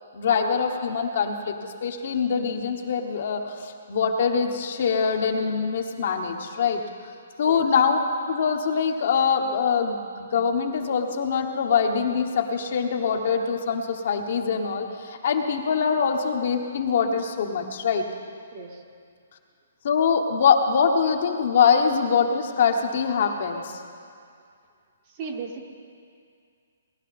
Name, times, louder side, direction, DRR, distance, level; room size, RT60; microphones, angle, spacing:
voice 1, 0.1-1.5 1.8-6.8 7.4-8.0 8.3-18.0 19.8-23.6, left 6 dB, 55° left, 3 dB, 1.2 m, -23 dB
voice 2, 25.2-25.7, right 5 dB, 35° right, 3 dB, 1.2 m, -35 dB
18.5 x 11.0 x 4.2 m, 2.3 s
hypercardioid pair, 165°, 0 cm